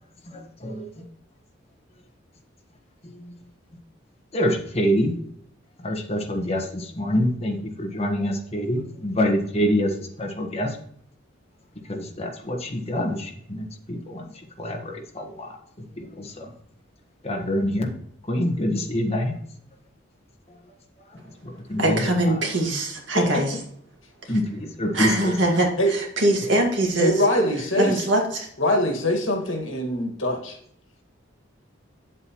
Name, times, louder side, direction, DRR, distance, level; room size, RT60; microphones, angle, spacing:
voice 1, 0.3-0.9 3.1-3.3 4.3-5.1 5.8-10.8 11.9-14.3 14.6-15.6 16.0-16.5 17.2-17.9 18.3-19.4 21.4-22.0 22.3-22.5 24.3-25.4, equal, 30° left, 1 dB, 1.4 m, -26 dB
voice 2, 21.8-23.6 24.9-27.2 27.8-28.5, right 1 dB, 65° right, 1 dB, 2.0 m, -22 dB
voice 3, 27.0-28.0 28.6-30.6, left 1 dB, 80° left, 1 dB, 1.9 m, -23 dB
9.0 x 7.7 x 3.1 m, 0.66 s
head